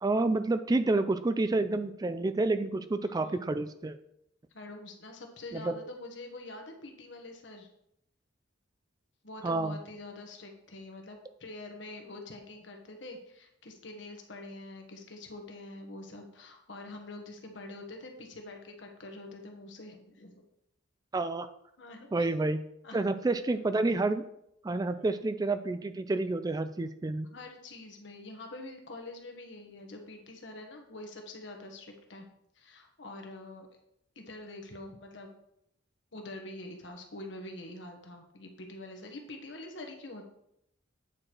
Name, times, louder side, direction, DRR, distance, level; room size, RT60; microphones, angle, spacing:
voice 1, 0.0-4.0 5.5-5.8 9.4-9.8 21.1-21.5 22.1-22.6 22.9-24.2 24.6-27.3, right 2 dB, 20° right, 11 dB, 0.3 m, -29 dB
voice 2, 3.0-3.5 4.5-7.7 9.2-20.4 21.8-22.3 22.8-23.2 25.0-25.2 27.3-32.3 32.5-33.7 34.1-35.4 36.1-40.2, left 2 dB, 65° left, 3 dB, 1.4 m, -45 dB
8.8 x 4.8 x 4.5 m, 0.77 s
head